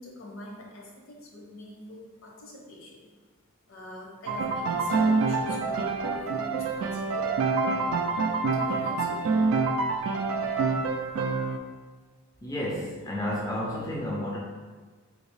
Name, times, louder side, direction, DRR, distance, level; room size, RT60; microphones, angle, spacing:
voice 1, 0.0-3.0 3.7-7.3 8.5-9.2, left 1 dB, 65° left, -1 dB, 0.7 m, -44 dB
Piano, 4.3-11.6, right 4 dB, 70° right, 0.3 m, -26 dB
voice 2, 12.4-14.4, left 1 dB, 15° left, -4 dB, 0.4 m, -31 dB
3.1 x 2.8 x 3.1 m, 1.4 s
head